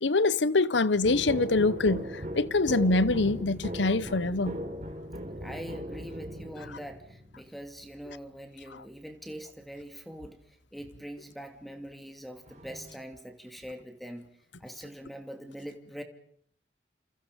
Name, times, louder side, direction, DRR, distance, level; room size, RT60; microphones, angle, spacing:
voice 1, 0.0-4.6, left 3 dB, 90° left, 1.0 m, -25 dB
sound 1, 1.0-7.5 12.5-13.0, equal, 40° right, 4.3 m, -38 dB
voice 2, 5.4-10.4 10.7-14.3 14.6-16.0, equal, ahead, 2.5 m, -43 dB
28.5 x 28.0 x 5.2 m
head